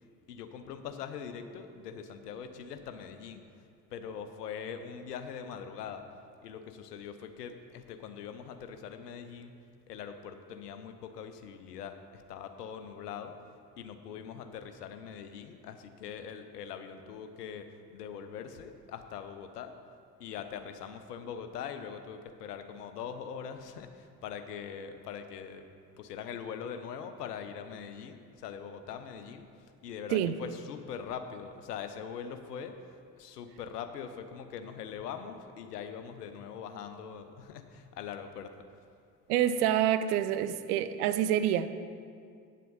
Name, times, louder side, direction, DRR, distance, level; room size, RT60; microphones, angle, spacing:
voice 1, 0.3-3.4 3.9-6.1 6.4-9.5 9.9-13.3 13.8-19.7 20.2-25.7 26.0-29.5 29.8-38.7, left 7 dB, 80° left, 9 dB, 0.8 m, -42 dB
voice 2, 39.3-41.7, right 10 dB, 70° right, 11 dB, 0.6 m, -27 dB
9.2 x 7.5 x 5.5 m, 2.3 s
figure-of-eight pair, 50°, 47 cm